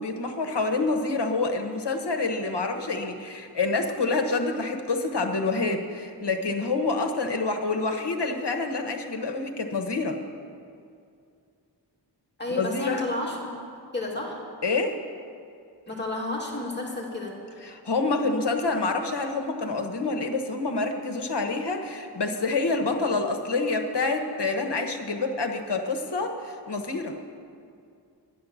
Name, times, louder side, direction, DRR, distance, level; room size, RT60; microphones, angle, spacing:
voice 1, 0.0-10.2 12.6-13.0 14.6-14.9 17.6-27.2, left 3 dB, 70° left, 5 dB, 1.2 m, -27 dB
voice 2, 12.4-14.4 15.9-17.4, left 2 dB, 25° left, -3 dB, 2.5 m, -31 dB
10.5 x 10.5 x 7.2 m, 2.4 s
wide cardioid pair, 70°, 42 cm